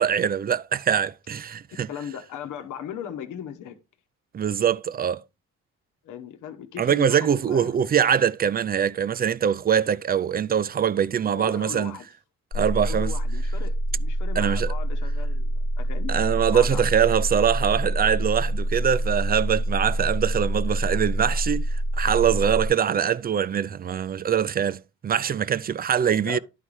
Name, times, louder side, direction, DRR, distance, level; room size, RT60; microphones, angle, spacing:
voice 1, 0.0-1.9 4.3-5.2 6.8-12.0 12.5-13.1 14.4-14.7 16.1-21.7 22.0-26.4, right 8 dB, 30° right, 0.4 m, -23 dB
voice 2, 1.9-3.8 6.0-7.7 11.3-12.1 12.8-16.8 26.2-26.4, left 9 dB, 85° left, 1.1 m, -37 dB
sound 1, 12.5-22.7, right 1 dB, 50° left, 1.1 m, -26 dB
11.0 x 4.2 x 4.7 m
cardioid pair, 90°, 30 cm